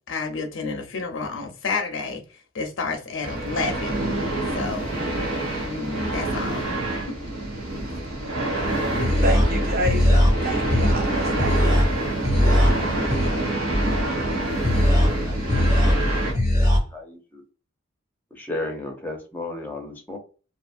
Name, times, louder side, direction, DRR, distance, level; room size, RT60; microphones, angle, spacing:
voice 1, 0.1-2.2 2.5-4.0 4.5-4.9 5.6-6.6, left 4 dB, 65° left, 0.6 m, -30 dB
sound 1, 3.2-16.3, right 1 dB, 75° right, 0.8 m, -27 dB
sound 2, 8.6-16.8, left 1 dB, 15° right, 0.9 m, -21 dB
voice 2, 9.2-11.8, right 1 dB, 45° right, 0.6 m, -29 dB
voice 3, 16.9-17.4 18.3-20.2, left 2 dB, 10° left, 0.6 m, -33 dB
2.7 x 2.4 x 2.5 m
head